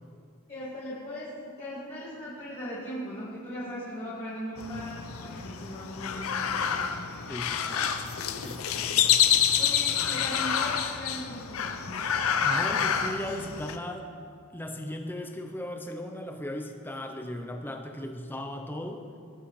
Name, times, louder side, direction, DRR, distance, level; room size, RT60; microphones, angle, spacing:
voice 1, 0.5-7.8 8.1-8.3 9.6-12.2, equal, 30° left, -10 dB, 2.0 m, -39 dB
sound 1, 4.6-13.8, left 8 dB, 75° left, 0.5 m, -28 dB
voice 2, 7.3-8.1 8.4-9.6 12.4-14.1 14.5-19.0, left 1 dB, 10° left, 4 dB, 0.6 m, -37 dB
17.0 x 6.1 x 3.2 m, 2.2 s
head